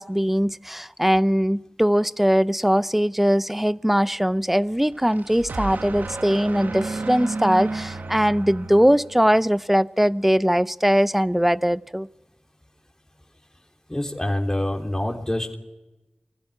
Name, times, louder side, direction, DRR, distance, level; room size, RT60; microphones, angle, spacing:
voice 1, 0.0-12.1, equal, 5° right, 0.7 m, -21 dB
sound 1, 4.8-9.4, right 3 dB, 80° right, 1.2 m, -32 dB
voice 2, 13.9-15.6, left 1 dB, 15° left, 3.3 m, -26 dB
23.5 x 15.5 x 9.8 m
wide cardioid pair, 55°, 3 cm